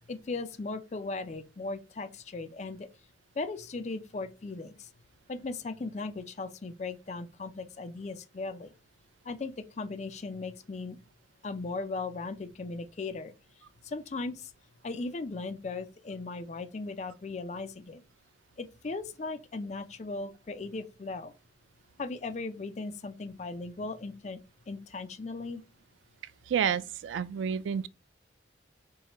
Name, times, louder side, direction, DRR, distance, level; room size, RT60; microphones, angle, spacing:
voice 1, 0.1-2.8 3.4-4.9 5.3-8.7 9.3-11.0 11.4-13.3 13.8-14.5 14.8-18.0 18.6-21.3 22.0-24.4 24.7-25.6, left 3 dB, 35° left, 0.4 m, -37 dB
voice 2, 26.5-27.9, right 7 dB, 80° right, 0.3 m, -29 dB
4.6 x 3.1 x 2.9 m
head